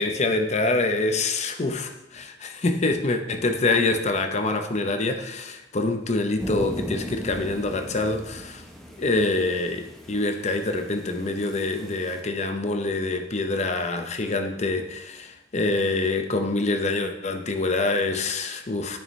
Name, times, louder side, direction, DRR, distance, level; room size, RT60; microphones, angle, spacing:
voice 1, 0.0-8.6 9.0-19.0, left 2 dB, 40° left, 7 dB, 0.7 m, -25 dB
sound 1, 6.4-12.2, equal, ahead, 1.0 m, -37 dB
9.1 x 6.7 x 3.2 m, 0.94 s
head